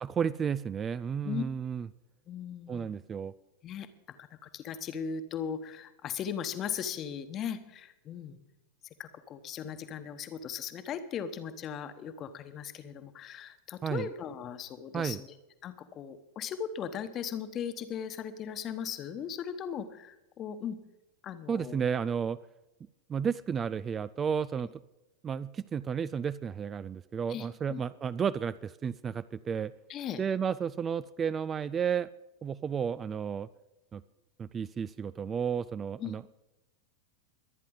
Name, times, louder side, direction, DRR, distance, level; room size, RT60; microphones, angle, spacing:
voice 1, 0.0-1.9 2.7-3.3 13.8-14.1 14.9-15.2 21.5-22.4 23.1-24.7 25.2-29.7 30.2-32.1 32.4-33.5 33.9-34.0 34.4-36.2, right 7 dB, 20° right, 17 dB, 0.4 m, -32 dB
voice 2, 2.3-2.9 3.6-3.9 4.2-8.4 9.0-15.3 15.6-20.8 21.2-21.8 27.3-27.8 29.9-30.2 36.0-36.1, left 8 dB, 30° left, 11 dB, 1.2 m, -38 dB
22.5 x 9.7 x 3.9 m, 0.99 s
figure-of-eight pair, 90°, 0 cm